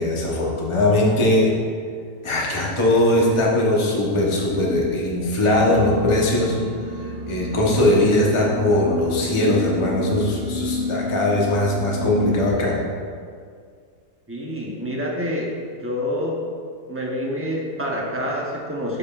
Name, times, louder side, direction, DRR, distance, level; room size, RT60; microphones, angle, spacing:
voice 1, 0.0-1.5 2.2-6.6 7.3-12.7, left 1 dB, 20° left, -3 dB, 0.9 m, -20 dB
sound 1, 5.5-12.5, left 2 dB, 35° right, 2.3 m, -29 dB
voice 2, 14.3-15.5 15.8-16.4 16.9-19.0, equal, 10° right, -3 dB, 0.6 m, -27 dB
12.0 x 5.1 x 2.5 m, 2.1 s
omnidirectional pair, 1.7 m